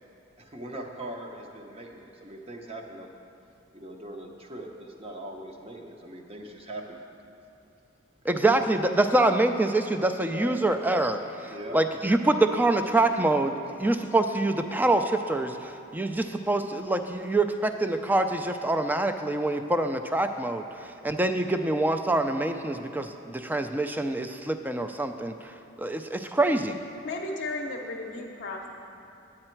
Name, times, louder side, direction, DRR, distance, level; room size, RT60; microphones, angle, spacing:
voice 1, 0.4-3.1 3.7-7.0 10.3-10.6 11.5-11.8, right 1 dB, 30° right, 2 dB, 0.8 m, -40 dB
voice 2, 8.3-13.5 13.8-20.6 21.0-25.5 25.8-26.8, right 2 dB, 10° right, 7 dB, 0.3 m, -25 dB
voice 3, 27.0-28.7, left 2 dB, 55° left, -1 dB, 0.7 m, -34 dB
9.7 x 8.7 x 4.5 m, 2.7 s
head